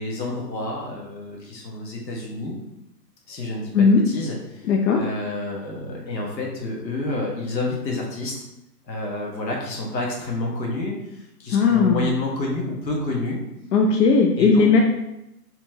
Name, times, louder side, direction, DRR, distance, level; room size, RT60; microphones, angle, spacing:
voice 1, 0.0-2.5 3.3-4.7 5.0-8.4 8.9-13.4 14.4-14.7, left 2 dB, 90° left, -2 dB, 1.4 m, -29 dB
voice 2, 4.7-5.0 11.5-12.0 13.7-14.8, left 4 dB, 75° left, 2 dB, 0.7 m, -17 dB
4.3 x 3.0 x 2.7 m, 0.88 s
hypercardioid pair, 155°, 49 cm